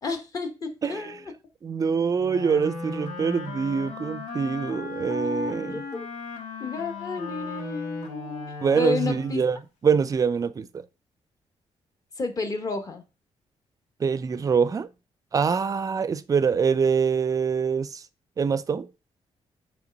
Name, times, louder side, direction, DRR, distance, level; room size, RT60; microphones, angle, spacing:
voice 1, 0.0-1.2 5.7-6.1 6.6-8.4 8.7-9.4 12.2-13.0, left 3 dB, 30° left, 1.2 m, -31 dB
voice 2, 0.8-1.2 1.6-5.8 8.6-9.6 9.8-10.9 14.0-14.9 15.3-18.0 18.4-18.9, right 6 dB, 30° right, 0.4 m, -24 dB
Wind instrument woodwind instrument, 2.2-9.6, left 4 dB, 80° left, 1.7 m, -36 dB
8.1 x 3.3 x 5.2 m
wide cardioid pair, 155°, 11 cm